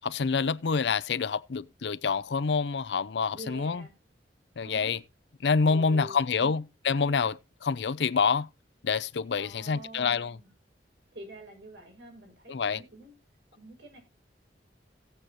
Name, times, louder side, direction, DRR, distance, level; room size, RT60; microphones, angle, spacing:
voice 1, 0.0-3.8 4.6-5.0 5.4-8.5 8.8-10.4 12.5-12.8, left 5 dB, 75° left, 0.5 m, -27 dB
voice 2, 3.3-3.9 4.6-4.9 5.7-6.6 9.3-10.5 11.1-13.1 13.6-14.0, right 1 dB, 90° right, 6.0 m, -47 dB
17.5 x 8.0 x 2.9 m
head